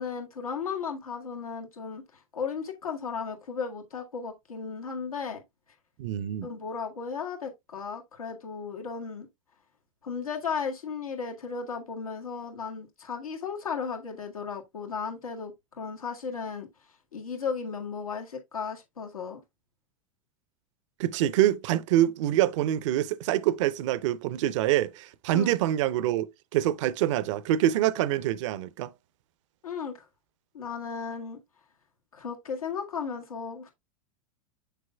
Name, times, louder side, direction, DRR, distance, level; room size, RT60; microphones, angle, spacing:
voice 1, 0.0-5.4 6.4-9.3 10.0-16.7 17.1-19.4 25.3-25.5 29.6-29.9 30.5-31.4 32.1-33.7, left 5 dB, 85° left, 1.8 m, -35 dB
voice 2, 6.0-6.5 21.0-28.9, right 13 dB, 60° right, 0.6 m, -25 dB
6.7 x 6.6 x 2.3 m
hypercardioid pair, 95°, 18 cm